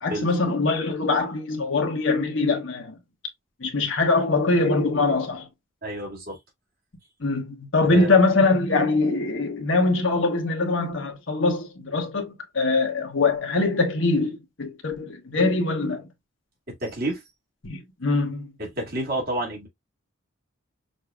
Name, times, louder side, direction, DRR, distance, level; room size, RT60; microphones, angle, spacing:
voice 1, 0.0-3.0 3.6-5.5 7.2-16.0 17.6-18.5, left 3 dB, 70° left, 1.2 m, -23 dB
voice 2, 5.8-6.4 7.9-8.1 16.8-17.2 18.6-19.7, right 1 dB, 45° right, 2.1 m, -29 dB
6.4 x 2.7 x 2.3 m
head